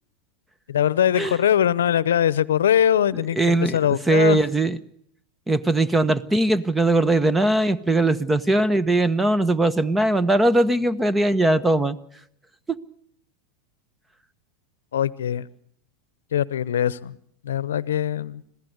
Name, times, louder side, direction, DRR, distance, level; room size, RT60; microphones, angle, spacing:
voice 1, 0.7-4.4 14.9-15.5 16.3-17.2 17.4-18.4, left 10 dB, 80° left, 20 dB, 0.8 m, -22 dB
voice 2, 3.3-3.8 4.1-4.8 5.5-12.0 12.7-12.8, right 2 dB, 10° right, 17 dB, 1.2 m, -20 dB
26.0 x 16.0 x 8.1 m, 0.70 s
hypercardioid pair, 100°, 0 cm